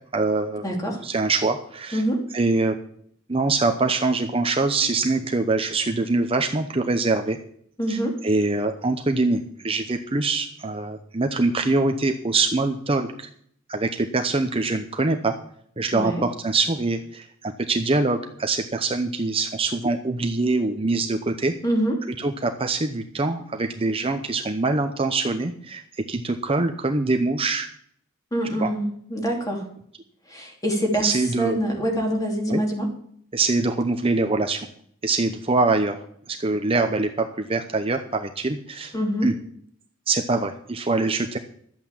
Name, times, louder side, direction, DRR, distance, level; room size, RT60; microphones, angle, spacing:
voice 1, 0.1-0.6 1.0-2.0 2.3-2.8 3.3-7.4 7.9-13.3 13.7-15.4 15.8-21.5 22.2-25.8 26.1-27.7 28.6-28.7 31.0-31.6 32.5-32.6 33.3-34.7 35.0-36.0 36.3-38.9 39.2-39.3 40.1-41.4, right 3 dB, 25° right, 6 dB, 0.7 m, -24 dB
voice 2, 0.6-1.0 1.9-2.2 7.8-8.2 15.9-16.2 21.6-22.0 28.3-29.6 30.3-32.9 38.9-39.3, equal, 15° left, 1 dB, 2.9 m, -25 dB
12.0 x 8.5 x 7.2 m, 0.65 s
head